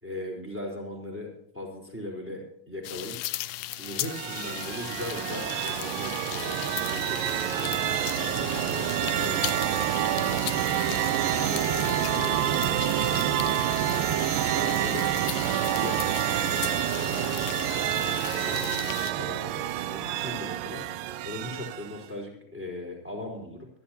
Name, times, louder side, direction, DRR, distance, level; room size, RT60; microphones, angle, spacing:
voice 1, 0.0-3.1 3.8-7.7 8.1-13.1 13.9-14.1 14.4-15.1 15.4-17.9 18.2-21.0 21.2-23.7, left 1 dB, 5° right, -1 dB, 3.7 m, -39 dB
sound 1, 2.8-19.1, left 16 dB, 85° left, 2.8 m, -37 dB
sound 2, 3.9-22.1, right 12 dB, 80° right, 2.0 m, -28 dB
26.0 x 11.5 x 2.9 m, 0.74 s
omnidirectional pair, 4.7 m